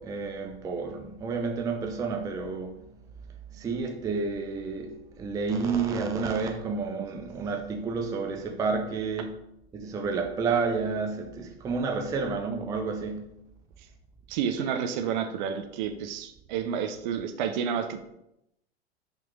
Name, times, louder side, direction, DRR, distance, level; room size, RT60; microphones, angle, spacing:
voice 1, 0.0-2.8 3.5-9.3 9.7-13.4, right 4 dB, 10° right, 0.4 m, -30 dB
voice 2, 14.3-18.0, right 7 dB, 45° right, 0.8 m, -30 dB
5.7 x 3.7 x 5.0 m
figure-of-eight pair, 90°, 32 cm